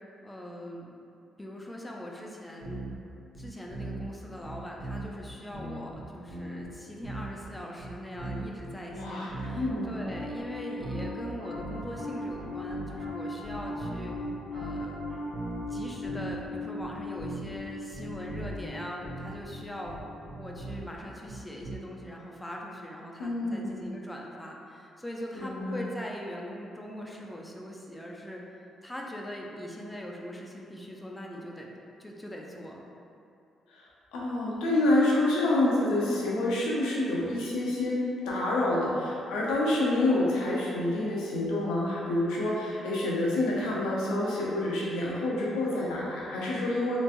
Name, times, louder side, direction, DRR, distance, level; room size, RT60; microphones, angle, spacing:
voice 1, 0.2-0.9 1.4-2.9 3.4-14.2 14.5-15.0 15.7-20.0 20.4-28.5 28.8-31.7 32.0-32.9, equal, 15° left, -1 dB, 0.5 m, -41 dB
sound 1, 2.6-3.0 3.3-4.1 4.4-5.2 5.5-6.7 7.0-7.5 7.8-9.8 10.0-10.5 10.8-12.0 12.3-13.1 13.4-16.5 16.8-17.6 17.9-18.7 19.0-21.7, right 2 dB, 30° left, 1.5 m, -39 dB
voice 2, 8.9-9.9 23.2-23.7 25.3-25.8 33.7-33.8 34.1-38.0 38.3-47.0, left 1 dB, 85° left, -5 dB, 0.7 m, -28 dB
Piano, 9.3-20.7, left 1 dB, 50° right, 1.4 m, -39 dB
3.2 x 3.1 x 2.5 m, 2.7 s
supercardioid pair, 65°, 0 cm